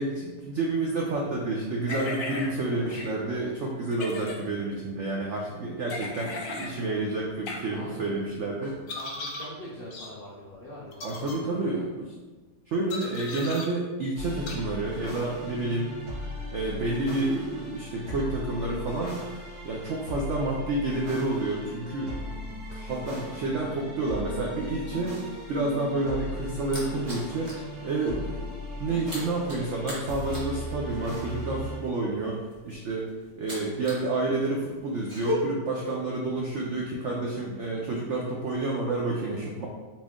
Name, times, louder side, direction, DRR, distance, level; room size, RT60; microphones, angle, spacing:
voice 1, 0.0-8.7 11.0-11.9 12.7-15.9 16.5-19.2 19.6-22.2 22.5-25.2 25.5-27.5 27.8-28.5 28.8-32.4 32.6-33.1 33.4-39.7, right 2 dB, 80° right, -2 dB, 0.6 m, -29 dB
sound 1, 1.9-2.5 2.9-3.1 3.9-4.4 5.9-6.7 7.5-7.6 8.9-9.5 9.9-10.1 10.9-11.4 12.9-13.7 14.5-14.6, left 3 dB, 60° left, 1.0 m, -36 dB
voice 2, 2.4-3.4 7.7-8.1 8.6-11.9, left 1 dB, 75° left, -5 dB, 0.5 m, -44 dB
sound 2, 14.1-31.8, left 1 dB, 60° right, 2.2 m, -38 dB
sound 3, 25.9-27.7 28.0-28.3 28.5-34.1 34.4-35.3, left 1 dB, 25° right, 0.8 m, -39 dB
4.2 x 3.0 x 3.6 m, 1.3 s
omnidirectional pair, 1.9 m